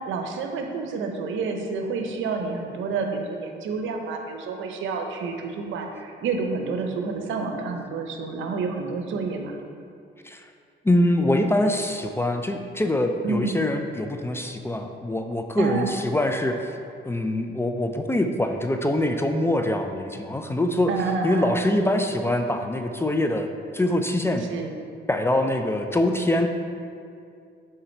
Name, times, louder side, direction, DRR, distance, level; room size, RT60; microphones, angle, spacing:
voice 1, 0.1-9.6 13.2-13.5 15.6-15.8 20.9-21.6 24.5-24.7, right 4 dB, 80° right, 4 dB, 0.7 m, -29 dB
voice 2, 10.8-16.8 17.0-20.9 21.2-23.5 23.7-24.4 25.1-26.5, left 1 dB, 10° left, 5 dB, 0.4 m, -24 dB
6.8 x 3.8 x 4.4 m, 2.4 s
cardioid pair, 90°, 20 cm